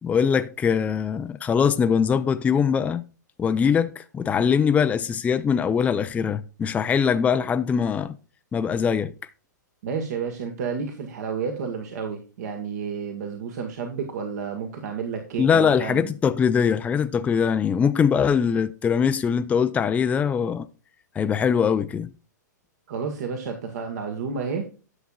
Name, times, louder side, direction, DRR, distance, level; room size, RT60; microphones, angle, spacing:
voice 1, 0.0-3.0 3.4-8.2 8.5-9.1 15.4-20.7 21.2-22.1, left 7 dB, 15° left, 0.5 m, -22 dB
voice 2, 9.8-16.1 22.9-24.7, right 6 dB, 60° right, 1.7 m, -31 dB
11.0 x 7.1 x 2.4 m
figure-of-eight pair, 110°, 10 cm